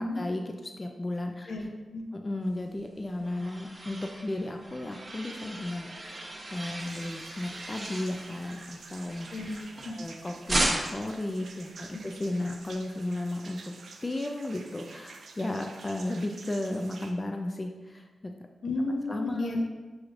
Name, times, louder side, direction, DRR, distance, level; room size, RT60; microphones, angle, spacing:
voice 1, 0.0-1.5 2.1-9.3 9.9-13.6 14.0-18.3 19.1-19.7, left 1 dB, 30° left, 3 dB, 0.4 m, -34 dB
sound 1, 2.7-10.1 10.5-11.1, right 1 dB, 40° right, 0.9 m, -36 dB
sound 2, 6.8-17.1, right 4 dB, 75° right, 0.4 m, -49 dB
voice 2, 9.3-9.9 11.9-12.0 18.6-19.7, left 2 dB, 75° left, 2 dB, 0.6 m, -32 dB
6.2 x 3.1 x 2.5 m, 1.2 s
cardioid pair, 60°, 0 cm